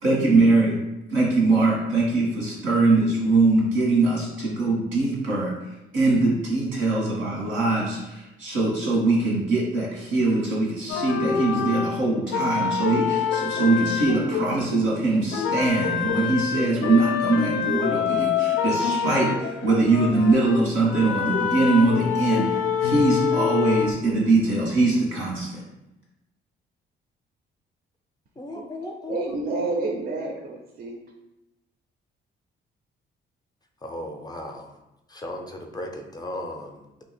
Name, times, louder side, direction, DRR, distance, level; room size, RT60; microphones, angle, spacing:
voice 1, 0.0-0.8 1.1-5.5 5.9-22.5 22.8-25.6, right 2 dB, 90° right, -4 dB, 1.5 m, -22 dB
sound 1, 10.9-15.0 15.3-23.9, left 7 dB, 85° left, 0.4 m, -26 dB
voice 2, 28.4-29.3 33.8-34.7 35.1-37.0, left 1 dB, 20° left, 3 dB, 0.5 m, -36 dB
voice 3, 29.1-31.0, right 3 dB, 50° right, 1 dB, 0.5 m, -29 dB
2.8 x 2.4 x 4.2 m, 0.94 s
cardioid pair, 90°, 20 cm